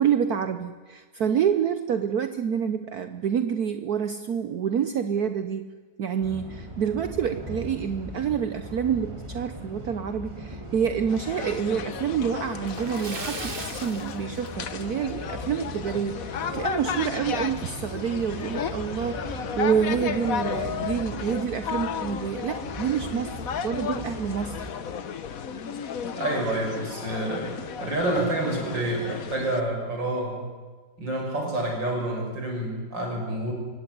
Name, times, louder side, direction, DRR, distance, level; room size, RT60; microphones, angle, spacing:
voice 1, 0.0-5.6 6.0-24.7, right 8 dB, 60° right, 9 dB, 1.3 m, -27 dB
sound 1, 6.2-24.7, equal, 15° right, 3.0 m, -39 dB
sound 2, 11.1-29.6, left 7 dB, 55° left, 1.4 m, -34 dB
Splash splatter, 12.6-15.0 15.3-15.5 15.9-16.0 17.5-17.6 17.9-18.0 18.6-18.9, right 4 dB, 30° right, 1.5 m, -38 dB
voice 2, 26.2-27.5 27.8-30.4 31.0-33.5, right 1 dB, 80° right, 1 dB, 6.9 m, -28 dB
25.0 x 17.0 x 9.6 m, 1.4 s
omnidirectional pair, 2.0 m